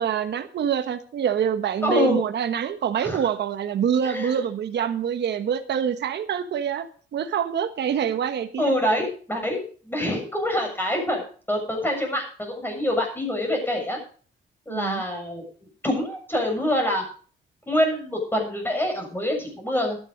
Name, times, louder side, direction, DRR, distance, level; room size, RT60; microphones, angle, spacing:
voice 1, 0.0-6.9 7.1-8.7 14.7-15.0, right 8 dB, 60° right, 9 dB, 1.2 m, -25 dB
voice 2, 1.8-2.2 3.0-3.3 4.0-4.4 8.6-11.2 11.5-14.0 14.7-15.4 15.8-17.0 17.7-20.0, left 1 dB, 10° left, 2 dB, 7.0 m, -25 dB
12.0 x 10.5 x 5.1 m, 0.43 s
cardioid pair, 90°, 20 cm